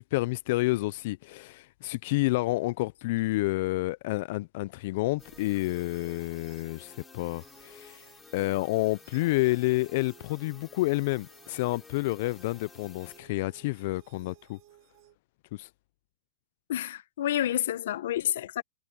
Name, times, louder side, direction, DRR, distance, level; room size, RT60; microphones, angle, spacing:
voice 1, 0.0-14.6 15.5-15.7, left 20 dB, 45° left, 0.3 m, -29 dB
sound 1, 5.2-13.2, left 5 dB, 10° left, 5.8 m, -53 dB
sound 2, 5.2-15.2, right 21 dB, 35° right, 5.4 m, -59 dB
voice 2, 16.7-18.6, left 12 dB, 60° left, 1.0 m, -29 dB
hypercardioid pair, 155°, 0 cm